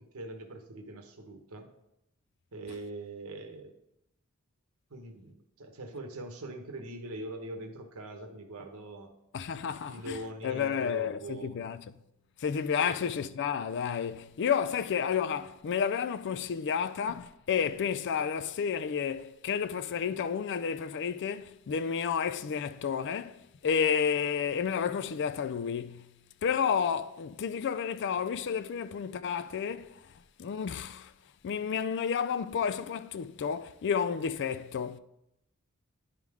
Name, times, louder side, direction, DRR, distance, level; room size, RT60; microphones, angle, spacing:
voice 1, 0.0-1.7 2.5-3.7 4.9-9.1 9.9-11.6 12.7-12.9, right 2 dB, 75° right, 1.0 m, -42 dB
voice 2, 9.3-11.8 12.4-26.1 26.4-31.1 31.4-35.0, left 7 dB, 55° left, 0.4 m, -31 dB
10.5 x 3.7 x 4.8 m
head